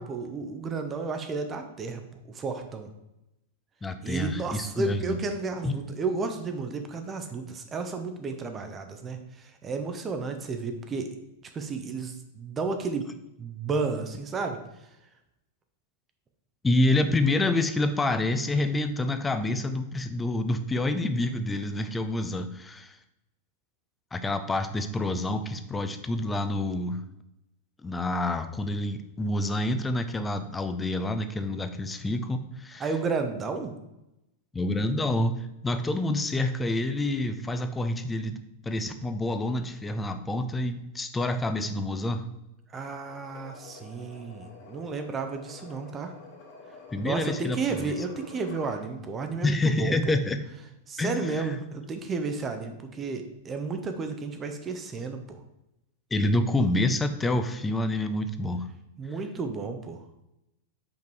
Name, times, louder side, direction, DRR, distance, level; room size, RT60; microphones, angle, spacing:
voice 1, 0.0-2.0 2.3-2.9 4.0-11.1 11.5-13.1 13.4-14.6 32.8-33.8 42.7-46.1 47.0-50.0 50.9-55.4 59.0-60.0, right 4 dB, 25° right, 6 dB, 0.7 m, -32 dB
voice 2, 3.8-5.2 5.6-5.8 16.6-23.0 24.1-27.0 27.8-32.9 34.5-42.3 46.9-47.9 49.4-50.4 51.0-51.6 56.1-58.7, left 2 dB, 10° left, 9 dB, 0.6 m, -28 dB
sound 1, 43.1-48.9, left 4 dB, 45° left, 1.9 m, -48 dB
5.3 x 5.2 x 4.7 m, 0.90 s
figure-of-eight pair, 95°, 0 cm